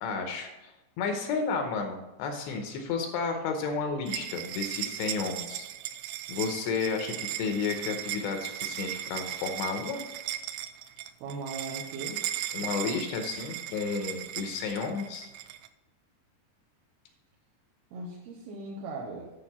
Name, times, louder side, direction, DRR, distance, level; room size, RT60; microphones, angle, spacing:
voice 1, 0.0-5.7 6.3-10.0 12.5-15.3, left 5 dB, 80° left, 4 dB, 2.8 m, -32 dB
sound 1, 4.1-15.7, right 12 dB, 90° right, 3.0 m, -37 dB
voice 2, 11.2-12.2 17.9-19.3, right 3 dB, 70° right, -3 dB, 2.6 m, -38 dB
9.0 x 7.0 x 4.3 m, 1.0 s
omnidirectional pair, 5.4 m